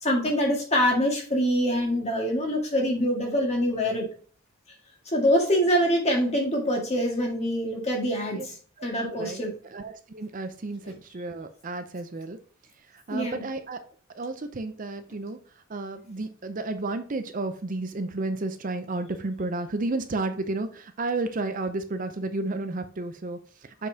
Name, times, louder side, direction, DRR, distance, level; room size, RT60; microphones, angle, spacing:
voice 1, 0.0-4.1 5.1-8.6 8.8-9.5 10.9-11.0 13.1-13.4, equal, 30° left, 1.8 m, -25 dB
voice 2, 8.8-12.4 12.9-13.8 14.1-15.4 15.7-23.9, right 2 dB, 40° right, 0.5 m, -32 dB
6.5 x 5.3 x 2.8 m
head